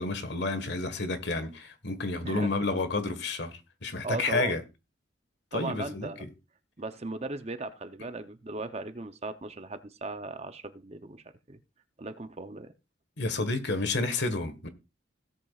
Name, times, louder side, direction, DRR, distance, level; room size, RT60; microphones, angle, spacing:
voice 1, 0.0-4.6 5.5-6.3 13.2-14.7, left 3 dB, 60° left, 1.5 m, -30 dB
voice 2, 4.0-4.5 5.5-6.2 6.8-11.6 12.0-12.7, right 2 dB, 30° right, 0.7 m, -37 dB
17.0 x 8.2 x 2.4 m
head